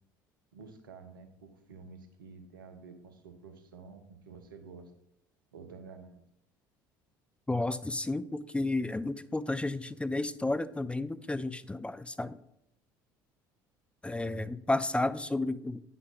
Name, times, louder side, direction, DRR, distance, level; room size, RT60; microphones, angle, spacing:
voice 1, 0.5-4.9 5.5-6.2, right 4 dB, 85° right, 7 dB, 1.0 m, -50 dB
voice 2, 7.5-12.4 14.0-15.8, left 2 dB, 10° left, 14 dB, 0.4 m, -32 dB
9.3 x 5.8 x 3.9 m, 0.77 s
hypercardioid pair, 60°, 11 cm